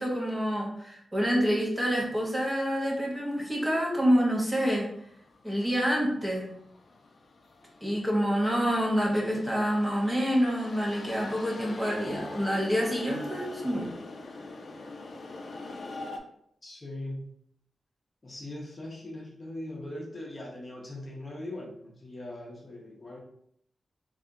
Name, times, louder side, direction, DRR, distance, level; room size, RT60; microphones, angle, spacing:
voice 1, 0.0-4.9 5.4-6.5 7.8-13.9, equal, 15° right, -2 dB, 0.6 m, -27 dB
sound 1, 4.5-16.2, left 3 dB, 55° left, 0.4 m, -44 dB
voice 2, 16.6-17.3 18.2-23.2, left 1 dB, 25° left, -3 dB, 0.7 m, -40 dB
3.4 x 2.7 x 2.5 m, 0.71 s
wide cardioid pair, 125°, 0 cm